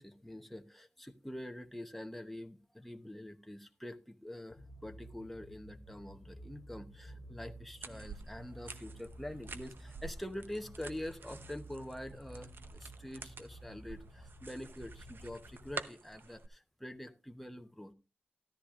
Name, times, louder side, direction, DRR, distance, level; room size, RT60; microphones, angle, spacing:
voice 1, 0.0-17.9, left 1 dB, 5° left, 7 dB, 0.9 m, -45 dB
sound 1, 4.5-15.8, right 1 dB, 25° left, 2.4 m, -53 dB
sound 2, 7.8-16.5, right 4 dB, 55° right, 0.8 m, -49 dB
13.5 x 13.0 x 2.4 m, 0.29 s
wide cardioid pair, 135°, 4 cm